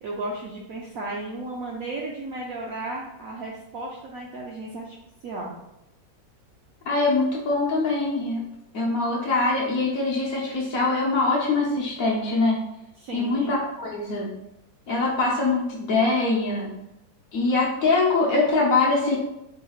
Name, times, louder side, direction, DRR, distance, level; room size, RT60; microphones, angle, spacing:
voice 1, 0.0-5.0 5.2-5.6 13.0-13.6, right 2 dB, 70° right, -3 dB, 0.8 m, -34 dB
voice 2, 6.9-8.5 8.7-12.6 13.1-14.3 14.9-16.7 17.3-19.2, left 3 dB, 60° left, -4 dB, 1.0 m, -23 dB
4.5 x 3.2 x 2.3 m, 0.86 s
omnidirectional pair, 2.0 m